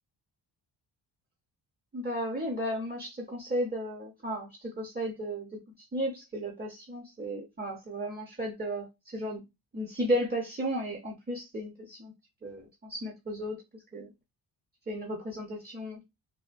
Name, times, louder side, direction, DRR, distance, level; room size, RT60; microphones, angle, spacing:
voice 1, 1.9-5.5 5.9-9.4 9.7-12.1 12.4-13.6 13.9-14.1 14.9-16.0, equal, 20° right, 0.8 m, -34 dB
3.5 x 2.2 x 2.5 m
cardioid pair, 95°, 44 cm